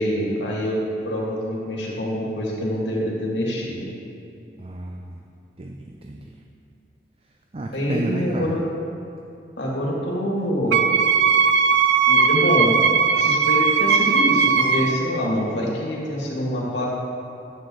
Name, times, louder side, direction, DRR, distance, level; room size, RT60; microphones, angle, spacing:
voice 1, 0.0-3.9 7.7-8.6 9.6-10.8 12.1-12.7 13.1-16.9, equal, 90° left, -4 dB, 2.2 m, -25 dB
voice 2, 4.6-5.2 5.6-6.4 7.5-8.5, right 2 dB, 35° right, 2 dB, 0.5 m, -32 dB
Wind instrument woodwind instrument, 10.7-15.0, right 6 dB, 85° right, 0.5 m, -18 dB
11.5 x 7.8 x 3.9 m, 2.7 s
head